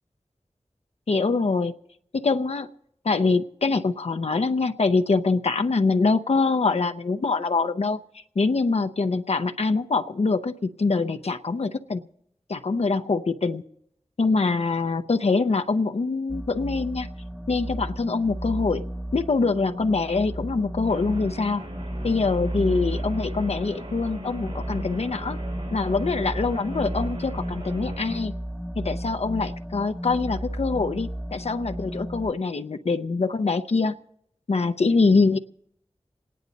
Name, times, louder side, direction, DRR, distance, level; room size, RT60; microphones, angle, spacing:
voice 1, 1.1-1.7 2.1-2.7 3.0-8.0 8.4-12.0 12.5-13.6 14.2-17.1 17.5-18.8 19.1-21.6 22.0-25.4 25.7-28.3 28.8-33.9 34.5-35.4, left 4 dB, 70° left, 7 dB, 0.6 m, -24 dB
sound 1, 16.3-32.3, equal, ahead, 0.7 m, -33 dB
Guitar, 20.8-28.3, equal, 70° right, 2.6 m, -41 dB
27.5 x 10.0 x 4.0 m, 0.74 s
wide cardioid pair, 40°, 11 cm